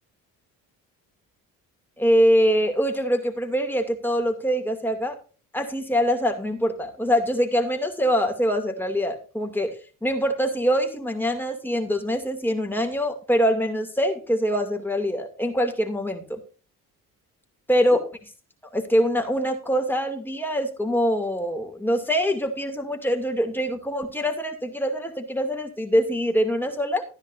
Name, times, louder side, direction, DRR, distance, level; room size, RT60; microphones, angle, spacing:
voice 1, 2.0-5.1 5.5-9.8 10.0-16.4 17.7-18.1 18.7-27.0, equal, 5° left, 3 dB, 2.5 m, -24 dB
13.0 x 10.5 x 2.6 m, 0.37 s
supercardioid pair, 75°, 37 cm